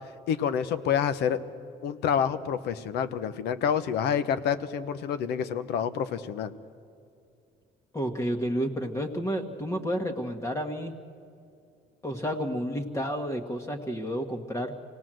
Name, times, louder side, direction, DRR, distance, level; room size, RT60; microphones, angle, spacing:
voice 1, 0.3-1.4 1.8-6.5, left 8 dB, 80° left, 12 dB, 1.0 m, -28 dB
voice 2, 7.9-10.9 12.0-14.7, equal, 20° left, 3 dB, 1.6 m, -31 dB
25.0 x 18.0 x 7.8 m, 2.5 s
cardioid pair, 110°, 17 cm